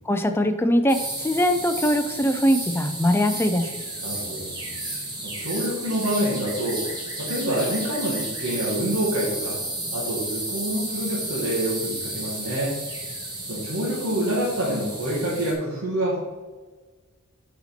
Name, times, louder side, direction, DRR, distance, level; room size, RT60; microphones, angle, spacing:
voice 1, 0.1-3.7, equal, 10° left, 7 dB, 0.4 m, -22 dB
sound 1, 0.9-15.5, right 2 dB, 20° right, 1.6 m, -32 dB
voice 2, 4.0-4.6 5.2-6.8 7.1-9.6 9.9-12.8 13.5-16.2, right 1 dB, 75° right, -7 dB, 2.0 m, -27 dB
8.2 x 4.2 x 4.3 m, 1.3 s
head